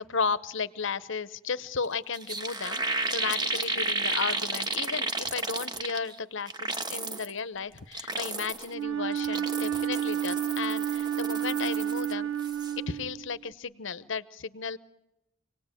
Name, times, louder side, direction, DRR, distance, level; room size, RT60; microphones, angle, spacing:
voice 1, 0.0-12.3 12.8-14.8, left 5 dB, 60° left, 16 dB, 0.9 m, -34 dB
sound 1, 1.8-1.9 2.1-6.2 6.5-7.3 7.8-8.7 9.1-12.1 12.4-12.7, right 3 dB, 20° right, 1.0 m, -32 dB
Wind instrument woodwind instrument, 8.7-13.5, right 9 dB, 60° right, 1.1 m, -31 dB
27.0 x 19.0 x 9.0 m, 0.92 s
head